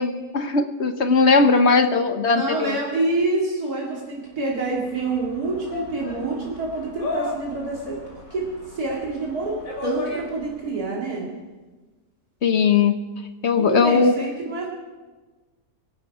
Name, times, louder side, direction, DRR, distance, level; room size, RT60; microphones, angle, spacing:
voice 1, 0.0-2.8 12.4-13.0 13.4-14.2, left 4 dB, 50° left, 9 dB, 1.1 m, -19 dB
voice 2, 2.3-8.0 8.3-8.4 8.7-11.2 13.6-14.7, right 3 dB, 80° right, -3 dB, 3.1 m, -27 dB
sound 1, 4.4-10.7, left 2 dB, 65° left, 3.3 m, -35 dB
24.5 x 11.5 x 4.8 m, 1.3 s
omnidirectional pair, 1.6 m